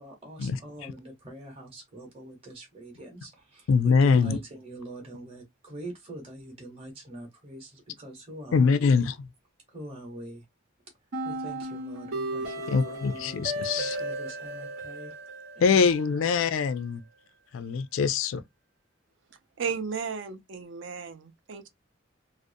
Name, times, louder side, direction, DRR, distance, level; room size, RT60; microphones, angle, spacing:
voice 1, 0.0-9.0 9.7-10.4 11.2-13.5 13.7-15.1 15.5-16.4, right 1 dB, 30° right, 0.8 m, -44 dB
voice 2, 3.7-4.4 8.5-9.3 12.7-14.0 15.6-17.0 17.5-18.4, left 5 dB, 75° left, 0.4 m, -23 dB
sound 1, 11.1-16.2, right 1 dB, 80° right, 0.9 m, -35 dB
voice 3, 19.6-21.7, right 6 dB, 60° right, 0.4 m, -34 dB
2.5 x 2.0 x 2.5 m
head